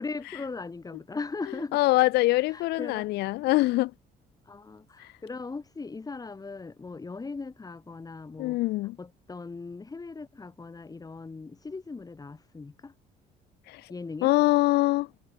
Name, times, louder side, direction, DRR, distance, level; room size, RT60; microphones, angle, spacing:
voice 1, 0.0-1.8 2.5-3.1 4.5-8.6 9.0-12.9 13.9-14.4, left 4 dB, 20° left, 6.6 m, -39 dB
voice 2, 1.7-3.9 5.0-5.1 8.4-9.0 13.7-13.8 14.2-15.1, left 19 dB, 75° left, 0.5 m, -23 dB
cardioid pair, 110°, 17 cm